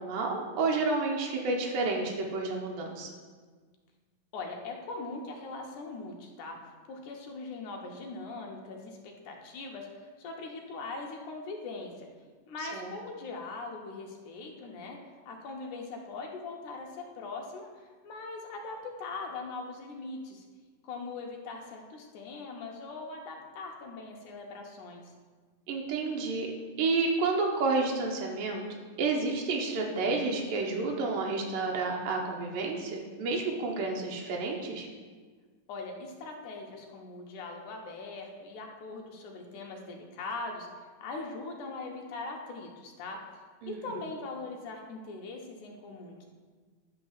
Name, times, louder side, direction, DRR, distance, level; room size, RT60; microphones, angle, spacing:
voice 1, 0.0-3.1 12.7-12.9 25.7-26.5 26.8-28.6 29.0-34.9 43.6-43.8, right 3 dB, 90° right, -1 dB, 2.7 m, -30 dB
voice 2, 4.3-6.6 6.9-12.1 12.5-15.0 15.3-20.4 20.8-25.0 35.7-40.7 41.0-43.2 43.7-46.3, left 3 dB, 70° left, 1 dB, 2.4 m, -41 dB
11.5 x 4.0 x 7.2 m, 1.5 s
omnidirectional pair, 3.9 m